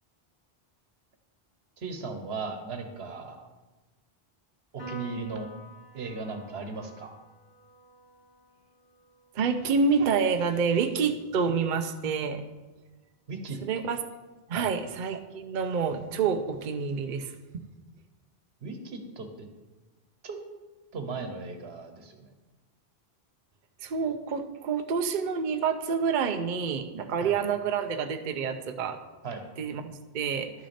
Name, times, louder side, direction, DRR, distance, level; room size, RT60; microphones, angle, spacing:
voice 1, 1.8-3.4 4.7-5.5 5.9-7.1 13.3-13.6 14.5-14.7 18.6-19.5 20.2-20.4 20.9-22.3 27.2-27.3 29.2-29.4, right 4 dB, 85° right, 6 dB, 1.3 m, -37 dB
Piano, 4.8-11.5, equal, 75° left, 3.0 m, -49 dB
voice 2, 9.3-12.4 13.6-14.0 14.5-17.3 23.8-29.0 29.6-30.5, right 5 dB, 55° right, 6 dB, 0.7 m, -28 dB
11.5 x 6.1 x 4.2 m, 1.2 s
omnidirectional pair, 1.0 m